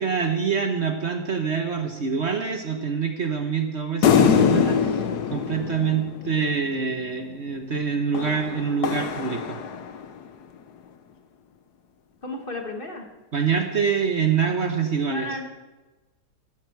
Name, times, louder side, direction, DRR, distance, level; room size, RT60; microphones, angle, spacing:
voice 1, 0.0-5.0 5.3-9.6 13.3-15.3, right 6 dB, 45° right, 5 dB, 1.2 m, -25 dB
sound 1, 4.0-6.7 8.1-10.2, left 7 dB, 75° left, 1.5 m, -23 dB
voice 2, 12.2-13.1 15.1-15.4, left 2 dB, 35° left, 2 dB, 1.9 m, -33 dB
15.5 x 12.0 x 4.7 m, 1.2 s
omnidirectional pair, 1.7 m